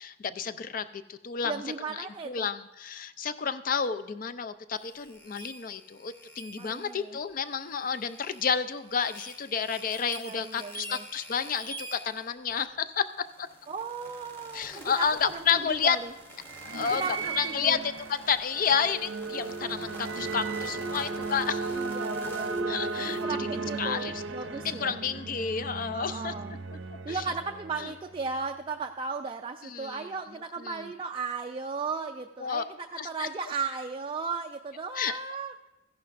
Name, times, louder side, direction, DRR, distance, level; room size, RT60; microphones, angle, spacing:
voice 1, 0.0-1.6 1.9-13.1 13.4-13.5 14.5-16.0 16.7-17.0 17.4-21.7 22.7-26.3 26.7-26.8 27.1-27.2 27.8-27.9 29.6-30.1 30.6-30.9 32.4-32.6 33.0-33.3 35.0-35.2, left 6 dB, 45° left, 12 dB, 0.4 m, -31 dB
voice 2, 1.4-2.5 6.6-7.2 10.2-11.0 13.7-16.1 16.8-17.8 21.7-25.0 25.9-26.6 27.0-35.5, right 4 dB, 25° right, 4 dB, 0.3 m, -36 dB
sound 1, 4.7-23.2, equal, 10° left, 0.9 m, -48 dB
sound 2, 14.6-28.3, right 4 dB, 65° right, 0.6 m, -36 dB
15.0 x 11.0 x 2.5 m, 0.93 s
head